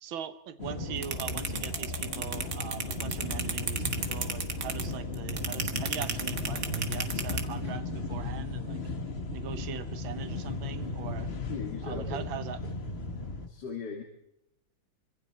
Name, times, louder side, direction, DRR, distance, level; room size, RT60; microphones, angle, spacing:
voice 1, 0.0-8.8 9.3-11.3 11.8-12.6, right 9 dB, 85° right, 10 dB, 1.8 m, -41 dB
sound 1, 0.6-13.5, left 2 dB, 35° left, 1.7 m, -35 dB
sound 2, 1.0-7.4, right 5 dB, 45° right, 1.9 m, -32 dB
voice 2, 11.5-12.2 13.3-14.0, left 5 dB, 60° left, 2 dB, 2.7 m, -38 dB
25.5 x 25.5 x 4.4 m, 0.84 s
omnidirectional pair, 2.1 m